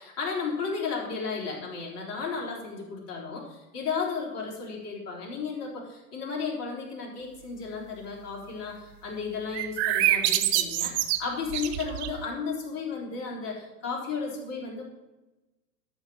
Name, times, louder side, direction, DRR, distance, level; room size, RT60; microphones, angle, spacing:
voice 1, 0.0-14.8, left 5 dB, 35° left, -2 dB, 4.0 m, -34 dB
sound 1, 9.5-12.2, right 13 dB, 45° right, 1.0 m, -26 dB
13.0 x 5.7 x 7.6 m, 1.1 s
figure-of-eight pair, 100°, 45 cm